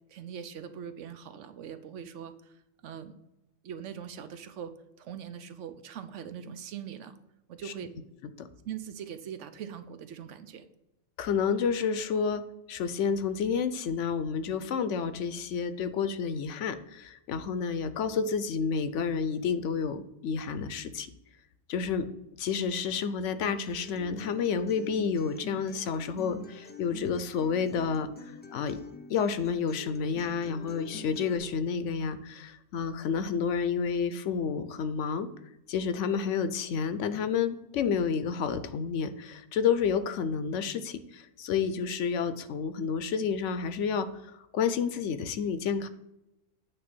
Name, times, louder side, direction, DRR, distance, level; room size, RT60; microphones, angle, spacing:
voice 1, 0.1-2.5 2.8-3.1 3.6-7.2 7.5-7.9 8.6-10.6, right 8 dB, 75° right, 10 dB, 1.0 m, -41 dB
voice 2, 11.2-12.4 12.7-21.1 21.7-22.1 22.4-28.1 28.5-28.8 29.1-35.3 35.7-44.1 44.5-45.9, left 6 dB, 75° left, 11 dB, 1.0 m, -30 dB
Acoustic guitar, 23.4-31.4, left 2 dB, 15° left, 0.3 m, -47 dB
8.8 x 3.3 x 6.1 m, 0.91 s
omnidirectional pair, 1.3 m